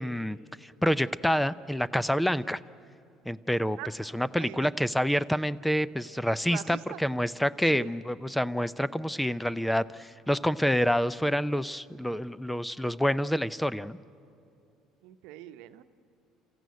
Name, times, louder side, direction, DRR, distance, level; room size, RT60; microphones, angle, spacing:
voice 1, 0.0-2.6 3.3-14.0, equal, 5° left, 17 dB, 0.5 m, -28 dB
voice 2, 4.4-4.7 6.4-7.0 7.7-7.9 15.0-15.8, right 15 dB, 80° right, 10 dB, 0.9 m, -42 dB
28.0 x 14.5 x 9.4 m, 2.5 s
supercardioid pair, 95°, 0 cm